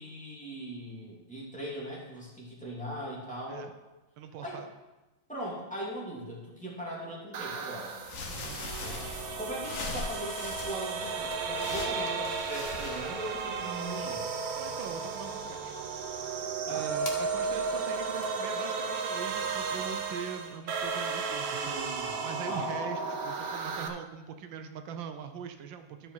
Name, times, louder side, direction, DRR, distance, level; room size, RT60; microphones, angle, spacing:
voice 1, 0.0-3.7 4.4-4.6 5.3-8.0 8.8-9.1 9.4-14.2 16.7-16.9 21.5-22.2 22.5-22.7, right 1 dB, 5° left, -6 dB, 2.5 m, -40 dB
voice 2, 4.2-4.7 8.3-8.6 14.6-15.8 16.7-26.1, right 7 dB, 85° right, 8 dB, 1.5 m, -42 dB
sound 1, 7.3-23.9, right 4 dB, 60° right, 1.2 m, -34 dB
sound 2, 8.0-13.7, left 3 dB, 70° left, 1.8 m, -41 dB
sound 3, 10.2-22.0, left 2 dB, 35° left, 1.5 m, -53 dB
13.0 x 5.5 x 4.7 m, 1.1 s
omnidirectional pair, 2.0 m